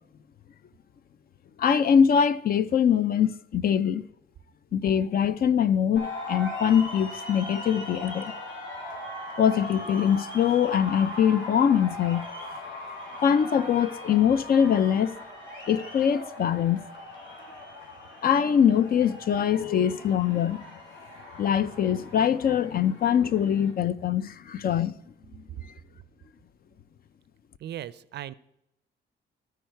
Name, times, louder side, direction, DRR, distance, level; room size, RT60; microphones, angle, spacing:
voice 1, 1.6-4.0 4.7-8.3 9.4-12.3 13.2-15.1 15.7-16.8 18.2-20.6 21.4-24.9, left 8 dB, 50° left, 0.5 m, -23 dB
sound 1, 6.0-23.7, left 1 dB, 65° left, 3.3 m, -40 dB
voice 2, 27.6-28.3, right 11 dB, 60° right, 0.4 m, -37 dB
13.0 x 4.7 x 4.5 m
cardioid pair, 90°, 20 cm